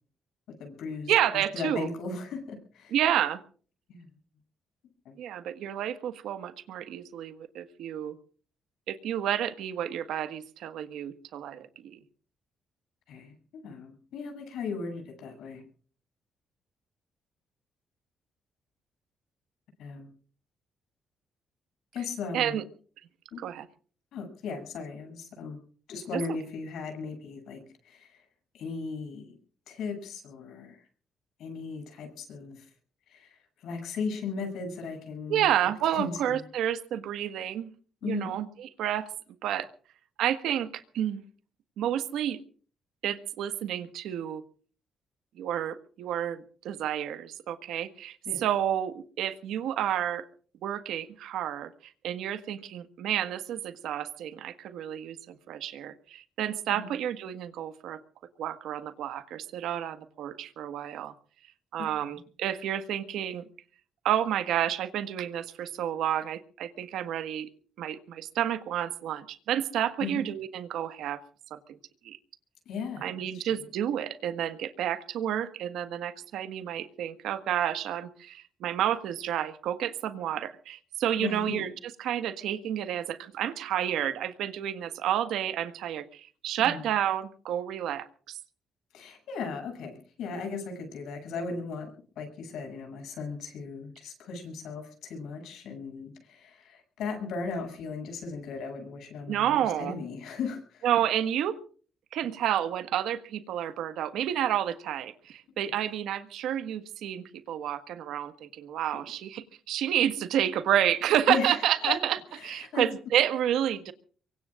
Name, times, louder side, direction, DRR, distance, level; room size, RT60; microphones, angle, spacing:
voice 1, 0.5-1.1 1.5-3.0 3.9-4.1 5.0-5.1 13.1-15.6 19.8-20.1 21.9-22.6 23.3-23.4 24.1-25.6 25.9-28.2 28.5-29.3 29.7-30.9 31.4-32.7 33.1-35.5 35.8-36.4 38.0-38.3 48.3-48.4 56.7-56.9 61.8-61.9 70.0-70.2 72.7-73.5 81.2-81.7 86.6-86.8 88.9-100.9 111.3-112.0 112.3-112.9, left 4 dB, 80° left, 5 dB, 7.5 m, -37 dB
voice 2, 1.1-1.9 2.9-3.4 5.2-8.1 8.9-12.0 22.3-22.6 23.4-23.7 26.1-26.2 35.3-37.7 38.0-39.1 39.4-39.7 40.2-41.2 41.8-42.4 43.0-44.4 45.4-50.3 50.6-51.7 52.0-58.0 58.4-61.1 61.7-63.4 64.0-67.5 67.8-71.2 71.5-71.6 72.0-72.2 73.0-81.7 82.0-88.4 99.3-100.0 100.8-101.6 102.1-112.2 112.4-113.9, right 10 dB, 85° right, 10 dB, 1.5 m, -30 dB
24.0 x 23.5 x 2.5 m, 0.43 s
cardioid pair, 90°, 0 cm